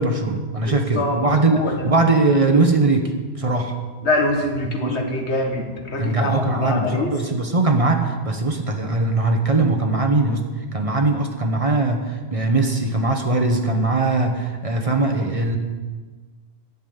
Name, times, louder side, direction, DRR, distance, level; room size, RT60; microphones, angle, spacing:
voice 1, 0.0-3.7 4.6-5.0 6.0-15.6, right 3 dB, 35° right, 4 dB, 1.1 m, -20 dB
voice 2, 0.6-1.2 1.5-1.7 4.0-7.1, left 2 dB, 90° left, 2 dB, 1.9 m, -24 dB
10.5 x 7.4 x 8.7 m, 1.4 s
omnidirectional pair, 1.1 m